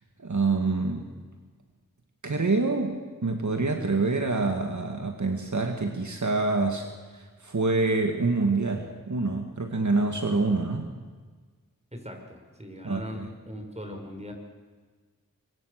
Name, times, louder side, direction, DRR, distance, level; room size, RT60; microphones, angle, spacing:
voice 1, 0.2-1.1 2.2-6.9 7.1-10.9 12.8-13.3, right 3 dB, 60° right, 4 dB, 2.1 m, -26 dB
voice 2, 11.9-14.3, equal, 20° right, 3 dB, 5.7 m, -40 dB
25.0 x 23.0 x 6.7 m, 1.5 s
wide cardioid pair, 50°, 33 cm